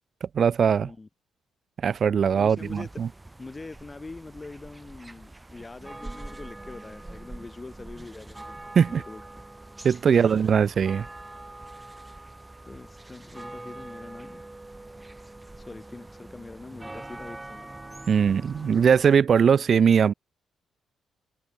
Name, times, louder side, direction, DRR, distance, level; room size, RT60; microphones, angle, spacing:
voice 1, 0.2-0.9 1.8-3.1 8.8-9.0 9.8-11.1 18.1-20.1, right 7 dB, 45° right, 0.5 m, -20 dB
voice 2, 2.3-3.0 3.4-8.6 8.9-9.2 10.1-10.5 12.6-14.4 15.5-17.8 18.5-18.8, left 3 dB, 20° left, 5.1 m, -43 dB
sound 1, 2.6-19.2, right 2 dB, 10° right, 6.8 m, -44 dB
cardioid pair, 120°, 0 cm